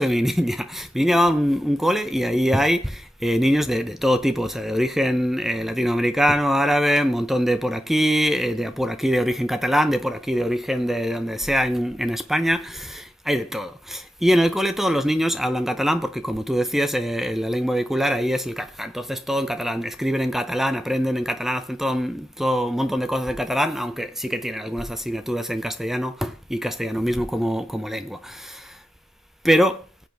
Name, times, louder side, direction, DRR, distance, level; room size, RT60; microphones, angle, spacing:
voice 1, 0.0-28.6 29.4-29.8, equal, ahead, 0.6 m, -23 dB
19.5 x 7.9 x 3.4 m
head